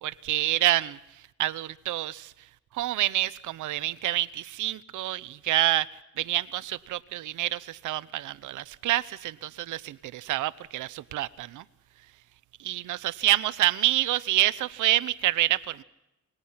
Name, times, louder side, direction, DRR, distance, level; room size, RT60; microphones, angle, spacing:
voice 1, 0.0-2.3 2.7-5.9 6.2-11.6 12.6-15.8, right 15 dB, 85° right, 0.9 m, -27 dB
26.5 x 21.0 x 5.8 m
cardioid pair, 90°, 30 cm